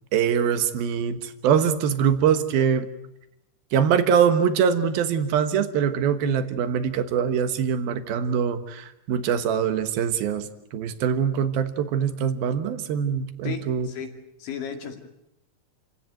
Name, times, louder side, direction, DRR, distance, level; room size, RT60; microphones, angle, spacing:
voice 1, 0.1-2.9 3.7-13.9, right 7 dB, 65° right, 10 dB, 2.7 m, -23 dB
voice 2, 13.4-15.1, left 7 dB, 70° left, 4 dB, 4.6 m, -35 dB
29.0 x 17.0 x 9.2 m, 0.86 s
omnidirectional pair, 5.4 m